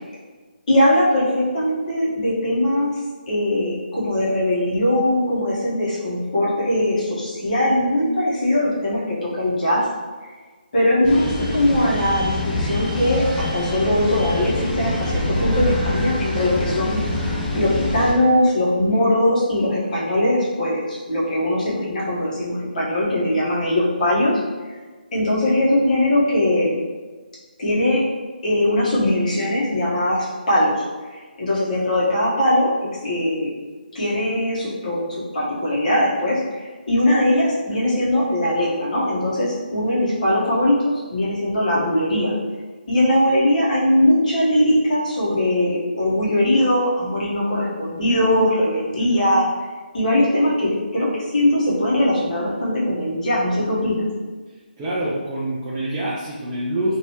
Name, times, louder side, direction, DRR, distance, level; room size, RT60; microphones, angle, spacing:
voice 1, 0.7-3.0 3.3-9.9 10.7-17.0 17.5-24.3 25.1-26.8 27.6-28.0 28.4-30.8 31.1-32.7 33.0-33.5 33.9-40.8 41.1-42.3 42.9-49.5 49.9-54.1, left 1 dB, 50° left, -7 dB, 1.3 m, -20 dB
sound 1, 11.0-18.1, left 1 dB, 15° left, 0.7 m, -25 dB
voice 2, 54.5-57.0, right 1 dB, 15° right, -8 dB, 0.4 m, -26 dB
3.1 x 2.9 x 2.9 m, 1.4 s
figure-of-eight pair, 155°, 5 cm